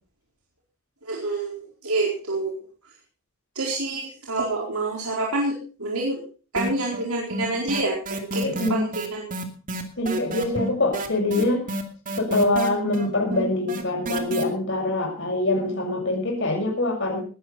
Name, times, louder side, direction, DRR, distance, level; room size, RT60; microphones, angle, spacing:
voice 1, 1.0-2.6 3.5-6.2 6.5-8.0 8.3-8.4 8.7-9.3, right 2 dB, 80° right, -2 dB, 4.5 m, -27 dB
sound 1, 6.6-7.1 7.3-14.4, right 1 dB, 40° right, 2.5 m, -29 dB
voice 2, 8.4-8.8 10.0-11.6 12.1-17.2, left 2 dB, 55° left, 0 dB, 6.9 m, -24 dB
20.0 x 13.0 x 4.2 m, 0.38 s
head